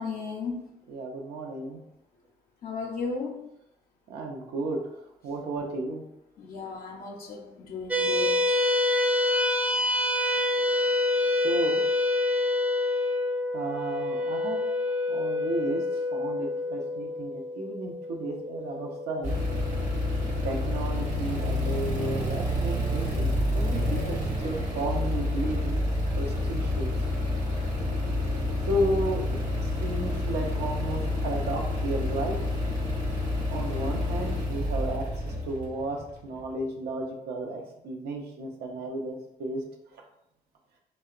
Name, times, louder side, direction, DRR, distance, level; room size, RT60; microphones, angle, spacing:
voice 1, 0.0-0.7 2.6-3.4 6.4-8.6, left 4 dB, 60° left, -1 dB, 0.5 m, -35 dB
voice 2, 0.9-1.8 4.1-4.8 5.2-6.0 11.4-11.8 13.5-14.6 15.1-15.8 16.1-19.4 20.4-25.8 26.2-26.9 28.7-29.4 29.8-32.4 33.5-39.6, right 2 dB, 75° right, 2 dB, 0.5 m, -33 dB
sound 1, 7.9-20.5, left 2 dB, 10° right, 0.4 m, -27 dB
sound 2, 19.2-36.5, left 1 dB, 45° right, 0.8 m, -28 dB
2.8 x 2.0 x 2.4 m, 0.81 s
hypercardioid pair, 50°, 17 cm